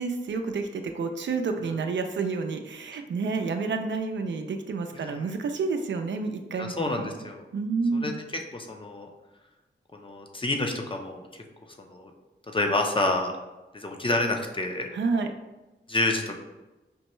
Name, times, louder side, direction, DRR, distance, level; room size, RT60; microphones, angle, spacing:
voice 1, 0.0-6.7 7.0-7.1 7.5-8.2 14.9-15.3, right 4 dB, 70° right, 5 dB, 0.4 m, -29 dB
voice 2, 4.9-5.3 6.6-7.4 8.0-9.1 9.9-11.2 11.8-12.1 12.5-13.3 13.7-14.9 15.9-16.4, left 2 dB, 25° left, 3 dB, 0.6 m, -29 dB
5.2 x 2.2 x 3.0 m, 1.1 s
cardioid pair, 55°, 20 cm